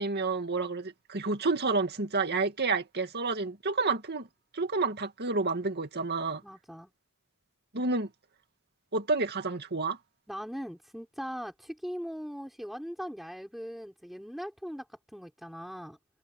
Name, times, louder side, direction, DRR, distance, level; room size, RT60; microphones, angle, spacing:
voice 1, 0.0-4.3 4.5-6.4 7.7-8.1 8.9-10.0, right 3 dB, 50° right, 2.3 m, -29 dB
voice 2, 6.4-6.9 10.3-16.0, equal, ahead, 5.7 m, -40 dB
head